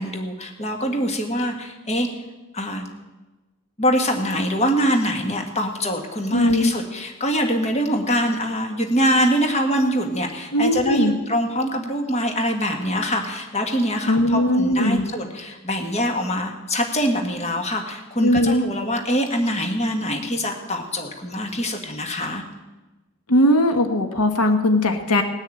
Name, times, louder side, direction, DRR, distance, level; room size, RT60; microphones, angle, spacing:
voice 1, 0.0-2.1 2.5-2.8 3.8-22.4, equal, 30° left, 3 dB, 1.7 m, -24 dB
voice 2, 6.3-6.7 10.5-11.1 14.1-15.1 18.2-18.6 23.3-25.2, left 1 dB, 85° left, 7 dB, 1.3 m, -19 dB
18.5 x 6.6 x 8.8 m, 1.1 s
head